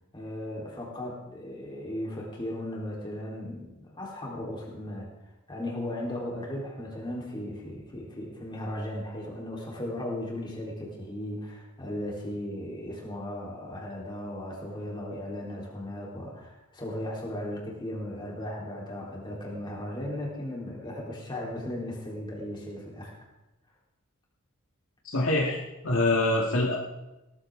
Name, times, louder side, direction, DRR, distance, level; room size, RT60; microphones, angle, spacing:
voice 1, 0.1-5.1 5.5-23.2, left 1 dB, 20° left, -3 dB, 3.8 m, -36 dB
voice 2, 25.0-26.8, left 2 dB, 65° left, -1 dB, 1.8 m, -25 dB
18.0 x 14.0 x 3.8 m, 1.0 s
head